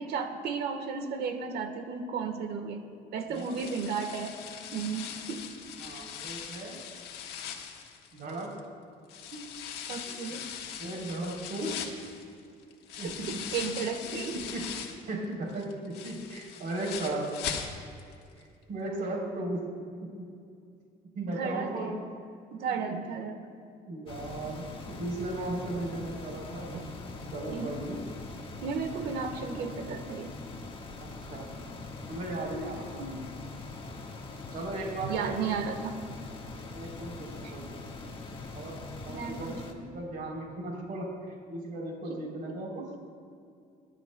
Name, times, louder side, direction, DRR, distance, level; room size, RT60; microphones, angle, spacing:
voice 1, 0.0-2.8 3.1-4.4 4.7-5.4 9.9-10.4 13.0-14.4 21.3-22.0 22.5-23.4 26.7-26.9 27.5-27.7 28.6-30.3 33.0-33.2 35.0-35.9 37.4-37.5 39.1-39.8, right 5 dB, 75° right, 7 dB, 1.4 m, -34 dB
sound 1, 3.3-8.6 9.1-15.1 15.5-18.1 18.4-18.5 19.0-19.1, left 8 dB, 80° left, 1.5 m, -40 dB
voice 2, 3.3-3.6 5.8-6.8 8.1-8.5 9.3-9.4 10.0-10.2 10.8-11.8 13.0-13.4 14.1-14.2 14.5-17.2 18.4-19.6 20.0-20.3 21.2-21.9 22.7-23.0 23.9-26.7 27.3-28.0 31.0-31.5 32.1-33.1 34.5-35.6 36.7-37.7 38.5-38.8 39.0-39.6 39.8-41.1 41.5-42.9, right 2 dB, 60° right, -2 dB, 3.6 m, -36 dB
sound 2, 24.1-39.7, left 3 dB, 30° left, 1.6 m, -42 dB
27.0 x 11.5 x 2.3 m, 2.5 s
cardioid pair, 110°, 17 cm